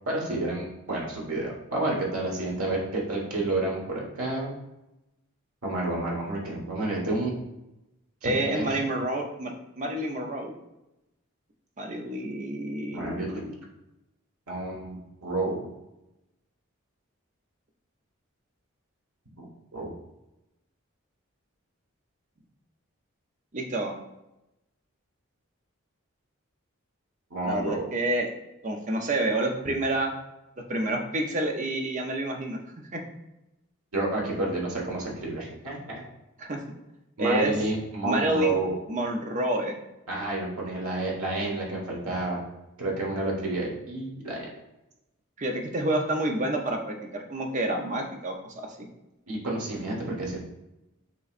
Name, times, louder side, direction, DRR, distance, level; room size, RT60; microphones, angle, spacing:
voice 1, 0.1-4.5 5.6-7.3 8.2-8.7 12.9-13.4 14.5-15.6 19.4-19.5 19.7-19.9 27.3-27.8 33.9-36.0 37.2-38.7 40.1-42.4 42.8-44.4 49.3-50.4, right 2 dB, 90° right, -3 dB, 1.4 m, -30 dB
voice 2, 8.2-10.5 11.8-13.6 23.5-23.9 27.4-28.3 28.6-30.1 30.7-32.6 32.9-33.0 36.4-36.6 37.2-37.5 38.0-38.6 38.9-39.7 45.4-48.9, right 1 dB, 35° right, 2 dB, 0.6 m, -28 dB
6.5 x 3.1 x 2.5 m, 0.94 s
head